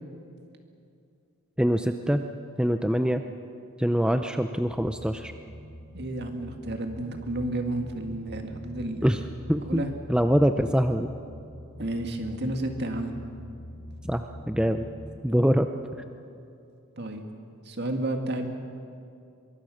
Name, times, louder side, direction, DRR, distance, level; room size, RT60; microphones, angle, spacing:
voice 1, 1.6-2.2 2.6-3.2 3.8-5.3 9.0-9.2 9.5-9.8 10.1-11.1 14.1-14.9 15.2-15.7, equal, 5° right, 7 dB, 0.5 m, -24 dB
sound 1, 4.6-15.1, equal, 45° left, 6.3 m, -44 dB
voice 2, 5.9-9.1 9.6-9.9 11.8-13.1 17.0-17.2 17.7-18.5, right 1 dB, 50° right, 5 dB, 2.1 m, -31 dB
24.0 x 22.5 x 6.6 m, 2.5 s
head